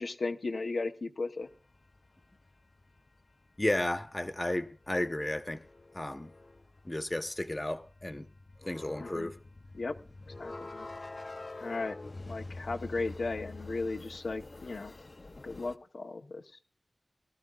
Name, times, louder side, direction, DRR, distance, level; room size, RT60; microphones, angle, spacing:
voice 1, 0.0-1.5 9.0-9.3 9.7-9.9 10.4-10.9 11.6-12.0 12.3-14.9 15.4-16.4, left 3 dB, 85° left, 0.9 m, -36 dB
sound 1, 1.5-15.8, left 2 dB, 50° left, 0.6 m, -47 dB
voice 2, 3.6-5.6 5.9-6.3 6.8-8.3 8.6-9.4, left 1 dB, 25° left, 0.9 m, -33 dB
20.0 x 13.5 x 2.4 m
wide cardioid pair, 60°, 0 cm